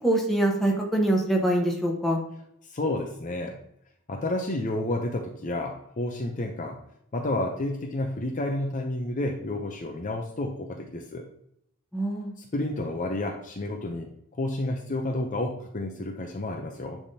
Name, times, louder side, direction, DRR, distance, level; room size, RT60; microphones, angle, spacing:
voice 1, 0.0-2.2 11.9-12.3, right 1 dB, ahead, -1 dB, 1.1 m, -24 dB
voice 2, 2.7-3.6 4.1-6.8 7.1-11.2 12.4-14.1 14.4-17.0, left 1 dB, 35° left, 3 dB, 0.6 m, -30 dB
10.0 x 3.5 x 2.7 m, 0.75 s
head